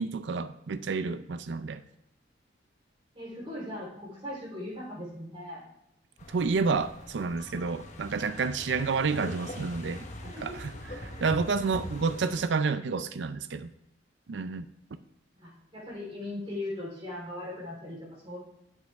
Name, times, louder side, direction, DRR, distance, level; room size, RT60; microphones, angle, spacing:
voice 1, 0.0-1.8 6.3-10.1 10.4-13.7 14.3-14.7, right 4 dB, 65° right, 11 dB, 0.5 m, -30 dB
voice 2, 3.1-5.6 10.2-10.6 11.1-11.3 15.4-18.4, left 1 dB, 25° right, -4 dB, 3.9 m, -39 dB
sound 1, 6.2-12.5, left 1 dB, 40° left, 1.1 m, -42 dB
9.2 x 7.6 x 3.5 m, 0.78 s
head